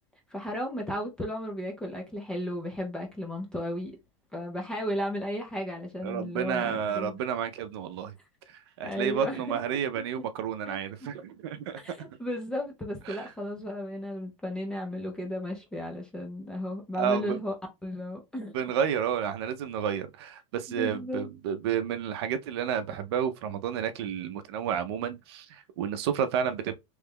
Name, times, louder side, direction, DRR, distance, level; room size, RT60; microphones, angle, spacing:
voice 1, 0.3-4.0 4.3-7.2 8.8-9.8 10.2-10.3 10.7-11.1 11.8-17.5 17.8-18.6 20.7-21.3, equal, 5° left, 0.4 m, -34 dB
voice 2, 6.0-8.1 8.5-11.8 13.1-13.3 17.0-17.4 18.5-26.7, right 8 dB, 50° right, 0.5 m, -31 dB
3.1 x 2.2 x 3.4 m
supercardioid pair, 175°, 17 cm